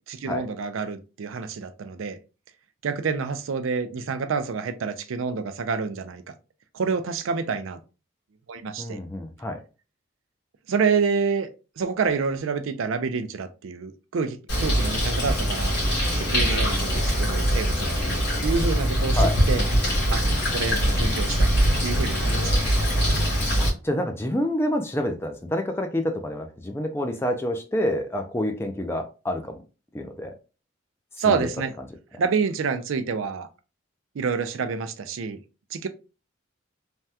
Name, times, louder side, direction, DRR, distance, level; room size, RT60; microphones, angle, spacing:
voice 1, 0.1-2.2 2.8-6.3 6.7-7.8 8.5-9.0 10.7-11.5 11.8-15.8 16.2-19.7 20.1-22.7 31.2-31.7 32.2-33.5 34.1-35.4 35.7-35.9, right 5 dB, 75° right, 0.4 m, -28 dB
voice 2, 8.8-9.6 19.2-19.3 23.6-29.5 29.9-30.3 31.3-31.4, left 1 dB, 10° left, 0.4 m, -28 dB
Bird, 14.5-23.7, equal, 55° left, 1.7 m, -22 dB
3.4 x 2.2 x 2.7 m
head